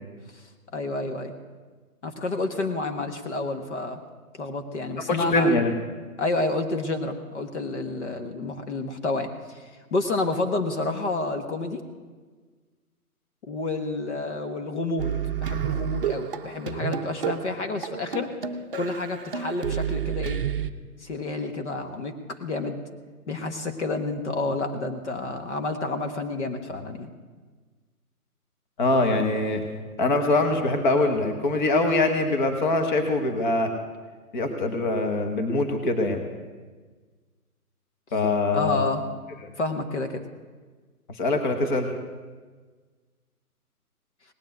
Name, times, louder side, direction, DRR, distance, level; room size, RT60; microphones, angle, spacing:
voice 1, 0.3-1.4 2.0-4.0 4.4-5.6 6.2-11.8 13.5-15.1 15.4-18.3 18.7-20.4 21.0-22.8 23.3-27.1 38.5-39.0 39.6-40.2, left 3 dB, 50° left, 6 dB, 1.4 m, -29 dB
voice 2, 5.1-5.7 28.8-29.6 30.0-33.7 34.3-36.2 38.1-38.8 41.2-41.9, left 2 dB, 30° left, 5 dB, 1.4 m, -23 dB
sound 1, 15.0-20.7, right 9 dB, 35° right, 0.7 m, -30 dB
18.5 x 7.3 x 9.2 m, 1.4 s
hypercardioid pair, 155°, 46 cm